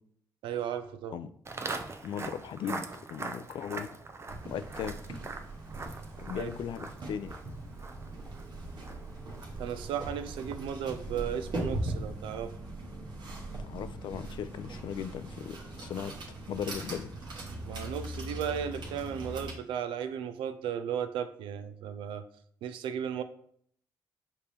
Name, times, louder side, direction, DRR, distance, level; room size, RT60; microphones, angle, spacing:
voice 1, 0.4-1.2 6.3-6.5 9.6-12.5 17.6-22.2 22.6-23.2, right 8 dB, 80° right, 11 dB, 0.4 m, -35 dB
Walk footsteps, 1.4-10.7, right 3 dB, 30° right, 0.6 m, -43 dB
voice 2, 2.0-2.8 3.1-3.9 4.5-4.9 6.2-7.3 13.6-16.1 16.5-17.1, left 8 dB, 65° left, 13 dB, 0.3 m, -37 dB
sound 1, 4.3-19.5, right 2 dB, 65° right, 1.2 m, -40 dB
5.2 x 2.8 x 3.3 m, 0.64 s
supercardioid pair, 55°, 8 cm